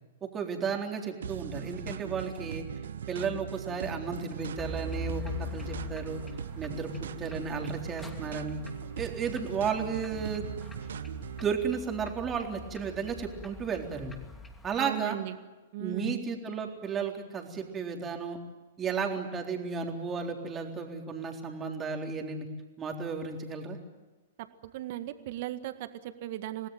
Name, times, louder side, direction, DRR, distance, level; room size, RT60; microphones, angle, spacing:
voice 1, 0.2-2.6 3.1-6.2 6.6-6.9 7.2-8.6 9.0-10.5 11.4-14.2 14.6-15.2 15.8-18.4 18.8-22.5 22.8-23.8, right 6 dB, 20° right, 2 dB, 3.8 m, -33 dB
sound 1, 1.2-11.5, right 9 dB, 65° right, 0.8 m, -40 dB
sound 2, 4.6-14.8, left 2 dB, 10° left, 2.8 m, -43 dB
voice 2, 14.8-15.3 15.7-16.2 24.6-26.7, right 13 dB, 50° right, 10 dB, 1.8 m, -36 dB
27.0 x 18.5 x 9.2 m, 1.2 s
figure-of-eight pair, 110°, 0 cm